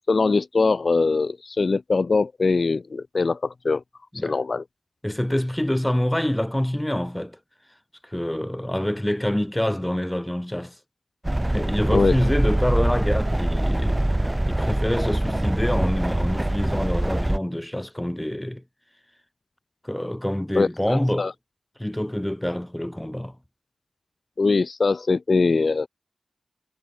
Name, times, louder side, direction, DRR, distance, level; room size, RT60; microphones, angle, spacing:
voice 1, 0.1-3.8 4.2-4.6 11.9-12.1 20.6-21.3 24.4-25.9, left 4 dB, 60° left, 3.4 m, -22 dB
voice 2, 5.0-7.4 8.0-10.8 11.5-14.1 14.5-18.6 19.8-21.3 21.8-23.4, left 1 dB, 10° left, 7.2 m, -26 dB
sound 1, 11.2-17.4, right 1 dB, 20° right, 2.4 m, -23 dB
wide cardioid pair, 75°, 0 cm